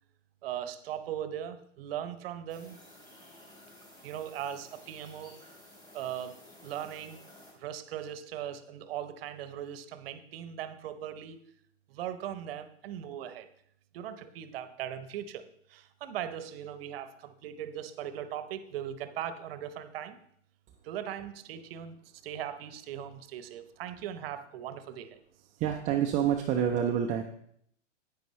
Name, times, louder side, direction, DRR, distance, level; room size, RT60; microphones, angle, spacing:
voice 1, 0.4-2.8 4.0-5.4 5.9-7.2 7.6-11.4 11.9-13.5 13.9-20.2 20.8-22.0 22.2-25.2, right 10 dB, 50° right, 12 dB, 0.9 m, -39 dB
sound 1, 2.5-7.5, left 1 dB, 10° left, 2.9 m, -54 dB
voice 2, 25.6-27.2, right 9 dB, 20° right, 3 dB, 0.5 m, -27 dB
10.5 x 9.1 x 3.1 m, 0.68 s
hypercardioid pair, 110°, 38 cm